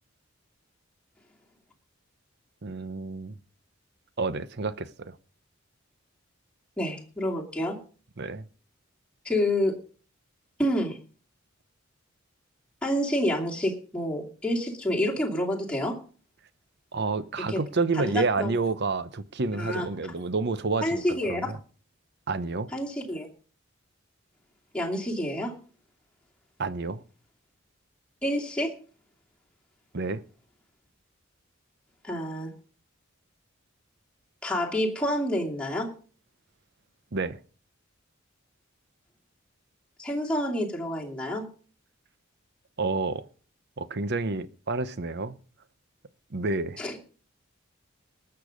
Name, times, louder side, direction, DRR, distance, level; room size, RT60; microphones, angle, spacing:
voice 1, 2.6-3.4 4.2-5.2 8.2-8.4 16.9-21.0 21.3-21.6 22.3-22.7 26.6-27.0 29.9-30.2 37.1-37.4 42.8-43.3 43.8-45.4 46.3-46.8, right 3 dB, 55° right, 0.8 m, -29 dB
voice 2, 6.8-7.8 9.2-9.8 10.6-11.0 12.8-16.0 17.5-17.6 17.9-18.5 19.6-19.9 20.8-21.5 22.7-23.3 24.7-25.6 28.2-28.8 32.0-32.5 34.4-35.9 40.0-41.5 46.8-46.9, left 1 dB, 5° left, 2.6 m, -28 dB
19.5 x 6.8 x 5.1 m
head